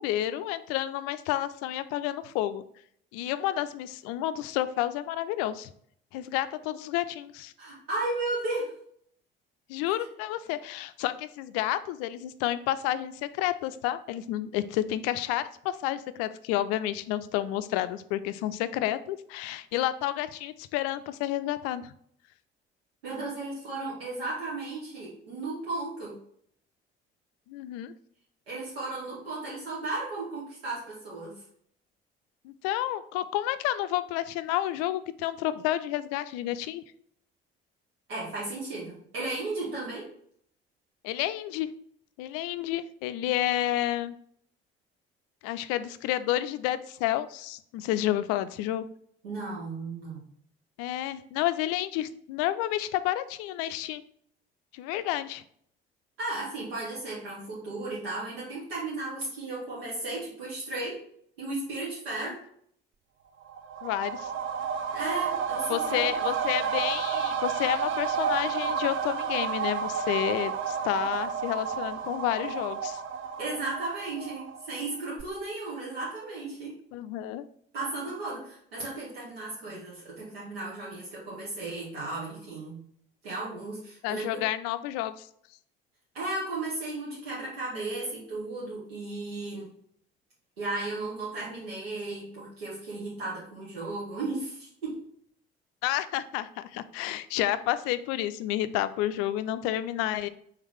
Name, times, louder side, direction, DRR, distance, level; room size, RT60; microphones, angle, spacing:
voice 1, 0.0-2.6 3.1-5.7 6.1-7.5 9.7-21.9 27.5-27.9 32.4-36.8 41.0-41.7 42.2-44.1 45.4-48.9 50.8-54.0 54.7-55.4 63.8-64.3 65.7-73.0 76.9-77.4 84.0-85.3 95.8-100.3, left 13 dB, 55° left, 13 dB, 0.4 m, -30 dB
voice 2, 7.6-8.7 23.0-26.1 28.5-31.3 38.1-40.1 49.2-50.3 56.2-61.0 61.4-62.4 64.9-66.3 73.4-76.7 77.7-82.8 83.2-84.4 86.1-89.7 90.6-95.0, right 2 dB, 75° right, -6 dB, 1.1 m, -35 dB
sound 1, 63.4-74.9 75.2-75.3, right 7 dB, 40° right, 0.5 m, -31 dB
4.7 x 3.4 x 3.3 m, 0.65 s
figure-of-eight pair, 50°, 30 cm